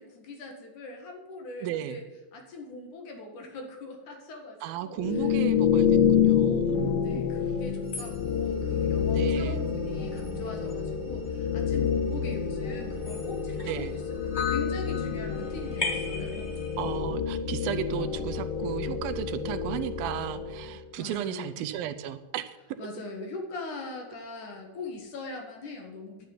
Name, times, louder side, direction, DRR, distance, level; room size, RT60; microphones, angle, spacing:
voice 1, 0.0-2.0 2.3-5.3 7.0-16.6 21.0-21.6 22.8-26.3, left 3 dB, 60° left, 3 dB, 3.1 m, -41 dB
voice 2, 1.6-2.0 4.6-7.2 9.1-9.6 13.7-13.9 16.8-22.8, right 12 dB, 85° right, 10 dB, 2.5 m, -34 dB
sound 1, 5.0-20.8, left 8 dB, 75° left, 3.0 m, -28 dB
sound 2, 7.8-17.0, left 3 dB, 20° left, 1.9 m, -39 dB
10.5 x 7.2 x 9.2 m, 1.1 s
omnidirectional pair, 4.2 m